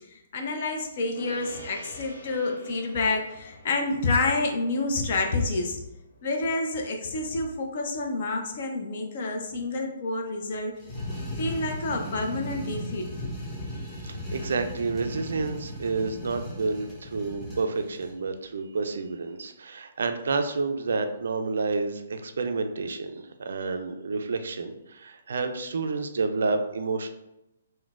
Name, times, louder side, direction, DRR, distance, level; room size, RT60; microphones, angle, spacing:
voice 1, 0.1-5.8 6.2-10.8 11.4-13.1, left 2 dB, 50° left, 3 dB, 0.5 m, -28 dB
Gong, 1.1-10.9, left 1 dB, 90° left, 1.1 m, -51 dB
sound 1, 10.8-18.2, left 1 dB, 10° left, 0.8 m, -37 dB
voice 2, 14.0-27.1, right 4 dB, 65° right, 7 dB, 0.3 m, -29 dB
3.8 x 2.2 x 2.3 m, 0.89 s
figure-of-eight pair, 130°, 0 cm